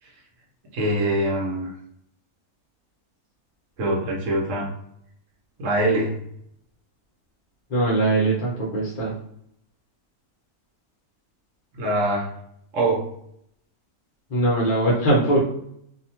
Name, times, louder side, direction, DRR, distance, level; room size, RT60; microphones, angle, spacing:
voice 1, 0.7-1.7 3.8-4.7 5.6-6.2 11.7-12.3 12.7-13.1, right 1 dB, 65° right, -1 dB, 1.0 m, -23 dB
voice 2, 7.7-9.1 14.3-15.4, right 1 dB, 45° left, -6 dB, 0.7 m, -21 dB
2.7 x 2.2 x 2.8 m, 0.72 s
omnidirectional pair, 1.6 m